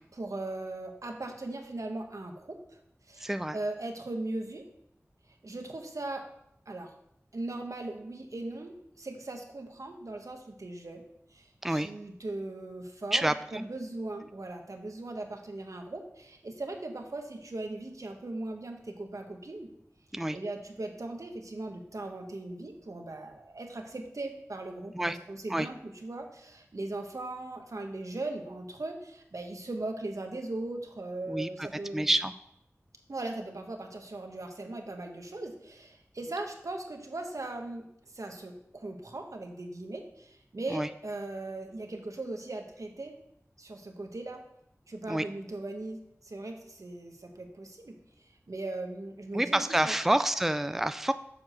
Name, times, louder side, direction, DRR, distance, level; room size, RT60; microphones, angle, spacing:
voice 1, 0.1-2.8 3.1-4.6 5.4-6.2 6.7-6.9 7.3-11.0 11.3-19.7 20.3-32.1 33.1-37.9 38.1-43.1 43.6-44.4 44.9-48.0 48.5-49.9, right 2 dB, 80° right, 3 dB, 1.1 m, -39 dB
voice 2, 3.2-3.6 11.6-11.9 13.1-13.7 20.1-20.4 24.9-25.2 25.5-25.7 31.3-31.7 31.9-32.3 40.7-40.9 45.1-45.2 49.3-51.1, right 1 dB, 5° right, 11 dB, 0.3 m, -28 dB
7.1 x 4.7 x 6.2 m, 0.77 s
wide cardioid pair, 55°, 5 cm